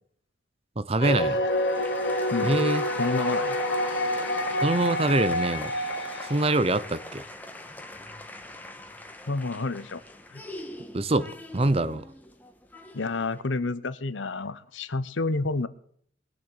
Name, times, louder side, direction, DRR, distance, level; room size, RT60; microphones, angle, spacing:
voice 1, 0.8-1.4 2.4-2.8 4.6-5.7 6.2-7.2 10.9-12.0, right 2 dB, 30° right, 0.7 m, -25 dB
sound 1, 1.0-6.5, left 1 dB, 70° left, 2.1 m, -27 dB
sound 2, 1.5-13.4, left 2 dB, 10° left, 1.4 m, -41 dB
voice 2, 3.0-3.6 9.3-10.0 10.3-10.4 12.9-15.7, left 3 dB, 85° left, 1.0 m, -29 dB
21.0 x 7.1 x 8.0 m
head